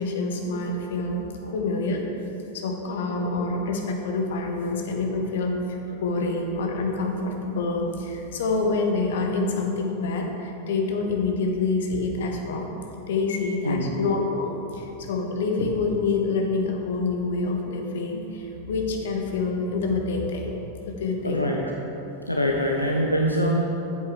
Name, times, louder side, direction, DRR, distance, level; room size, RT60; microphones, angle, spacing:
voice 1, 0.0-1.2 1.5-2.0 2.5-12.7 13.1-20.6 20.9-21.5, left 3 dB, 60° left, 2 dB, 1.0 m, -27 dB
voice 2, 21.2-21.6 22.3-23.6, equal, 90° left, -1 dB, 0.6 m, -24 dB
8.6 x 7.7 x 3.6 m, 3.0 s
figure-of-eight pair, 90°, 0 cm